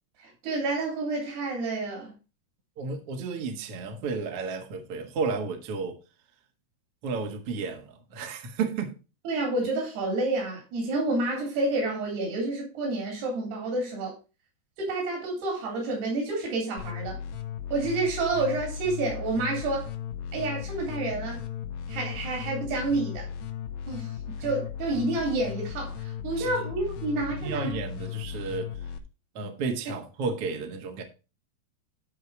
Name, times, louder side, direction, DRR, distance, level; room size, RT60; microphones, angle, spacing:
voice 1, 0.2-2.1 9.3-14.1 14.8-17.2 17.7-19.9 20.3-21.4 21.9-23.3 23.9-27.7, right 2 dB, 70° right, 5.2 m, -29 dB
voice 2, 2.8-6.0 7.0-8.9 26.4-26.5 27.4-28.9 29.4-31.0, right 4 dB, 55° right, 1.6 m, -32 dB
sound 1, 16.8-29.0, left 9 dB, 80° left, 3.0 m, -36 dB
12.0 x 4.8 x 4.7 m
omnidirectional pair, 4.7 m